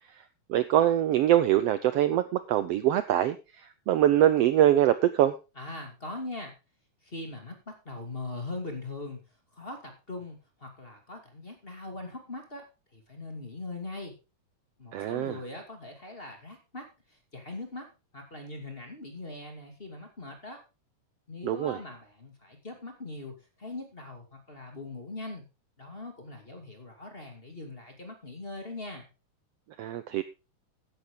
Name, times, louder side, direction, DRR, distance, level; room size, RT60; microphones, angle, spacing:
voice 1, 0.5-3.4 3.9-5.3 14.9-15.4 21.4-21.8 29.8-30.2, right 12 dB, 75° right, 13 dB, 1.5 m, -23 dB
voice 2, 5.6-6.5 7.0-9.2 9.5-12.6 12.9-14.1 14.8-17.9 18.1-20.6 21.3-25.4 25.8-29.1, left 2 dB, 20° left, 4 dB, 2.5 m, -41 dB
14.0 x 10.0 x 3.8 m, 0.30 s
omnidirectional pair, 3.3 m